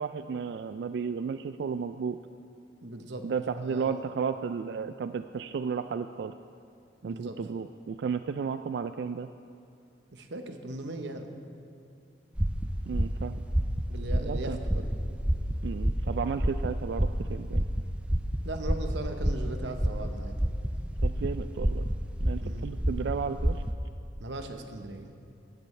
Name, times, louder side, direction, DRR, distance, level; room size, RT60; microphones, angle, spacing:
voice 1, 0.0-2.2 3.2-6.3 7.0-9.3 12.9-13.4 14.2-14.6 15.6-17.7 21.0-21.9 22.2-23.6, right 6 dB, 65° right, 10 dB, 0.3 m, -33 dB
voice 2, 2.8-3.3 3.6-4.0 7.0-7.4 10.1-11.3 13.9-14.9 18.4-20.4 22.4-22.7 24.2-25.1, right 2 dB, 85° right, 5 dB, 1.0 m, -38 dB
sound 1, 12.4-23.7, equal, 5° right, 0.5 m, -29 dB
17.0 x 13.0 x 3.3 m, 2.4 s
head